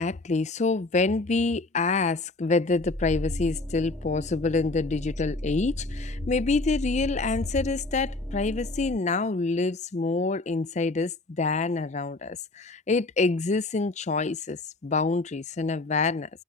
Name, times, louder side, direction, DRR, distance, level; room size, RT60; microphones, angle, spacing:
voice 1, 0.0-16.3, left 3 dB, 40° left, 0.5 m, -26 dB
sound 1, 2.8-9.0, equal, ahead, 1.5 m, -35 dB
head